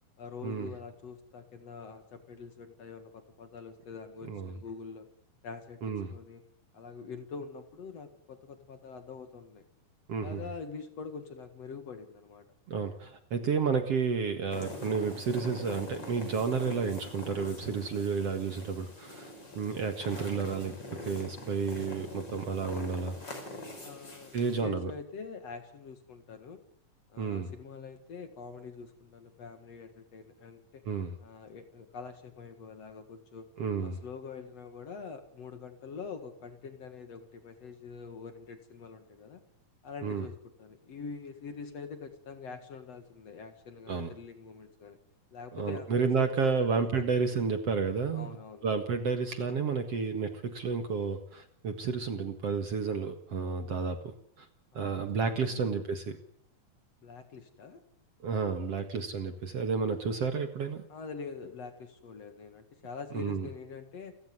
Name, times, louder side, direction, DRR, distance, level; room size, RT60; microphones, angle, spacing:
voice 1, 0.2-5.1 5.4-6.4 6.7-9.7 10.2-12.5 23.8-26.6 27.1-30.8 31.2-33.5 33.8-39.4 39.8-45.0 45.3-47.4 48.1-48.6 54.7-55.7 57.0-57.8 60.9-64.2, left 5 dB, 50° left, 8 dB, 2.6 m, -44 dB
voice 2, 5.8-6.1 10.1-10.4 12.7-19.3 19.6-20.8 21.0-23.2 24.3-24.9 27.2-27.5 30.9-31.2 33.6-34.0 40.0-40.3 43.9-44.1 45.5-48.4 48.6-54.5 54.7-56.2 58.2-60.8 63.1-63.5, right 5 dB, 50° right, 7 dB, 2.3 m, -31 dB
sound 1, 14.5-24.6, left 1 dB, 30° left, 6.1 m, -43 dB
29.5 x 15.5 x 9.7 m, 0.68 s
omnidirectional pair, 4.3 m